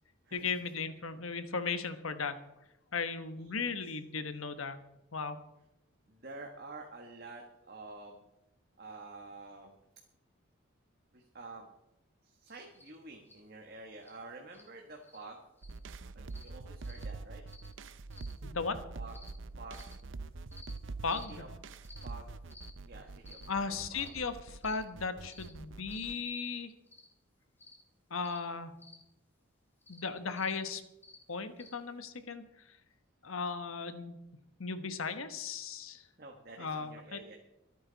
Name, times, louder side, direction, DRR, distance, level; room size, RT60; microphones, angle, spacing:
voice 1, 0.3-2.4 2.9-4.8 5.1-5.4 18.4-18.8 21.0-21.4 23.5-26.7 28.1-28.7 29.9-30.8 31.3-32.8 33.2-34.2 34.6-36.0 36.6-37.2, left 5 dB, 85° left, 9 dB, 1.2 m, -36 dB
voice 2, 3.4-3.9 6.1-8.2 8.8-9.8 11.1-11.7 12.2-15.4 16.1-17.4 18.9-19.2 19.5-19.9 21.1-22.3 22.8-24.1 36.2-37.4, right 2 dB, 45° right, 2 dB, 1.5 m, -49 dB
sound 1, 12.7-12.9 13.3-13.4 14.0-14.1 14.5-14.7 15.0-15.2 15.6-15.8 16.3-16.5 16.8-17.0 17.5-17.7 18.1-18.3 19.1-19.3 19.7-19.9 20.5-20.7 21.1-21.3 21.8-22.0 22.5-22.7 23.2-23.5 24.0-24.1 24.6-24.8 25.3-25.5 25.9-26.1 26.9-27.1 27.6-27.8 28.2-28.4 28.8-29.0 29.8-30.0 30.4-30.6 31.0-31.2 31.6-31.7, left 3 dB, 10° left, 2.3 m, -54 dB
dubbed up to fuck, 15.6-26.1, right 3 dB, 65° right, 0.6 m, -45 dB
24.0 x 9.1 x 4.1 m, 0.90 s
head